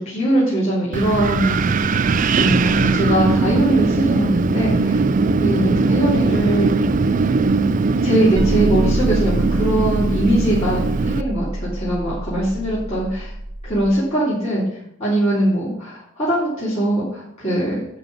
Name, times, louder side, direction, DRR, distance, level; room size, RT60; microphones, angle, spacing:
voice 1, 0.0-5.0 5.4-6.7 8.0-13.3 13.6-17.9, right 1 dB, 35° left, -9 dB, 3.3 m, -21 dB
Wind, 0.9-11.2, right 3 dB, 40° right, 0.4 m, -19 dB
sound 1, 8.4-13.9, right 1 dB, 15° right, 1.2 m, -26 dB
11.0 x 4.0 x 7.1 m, 0.73 s
head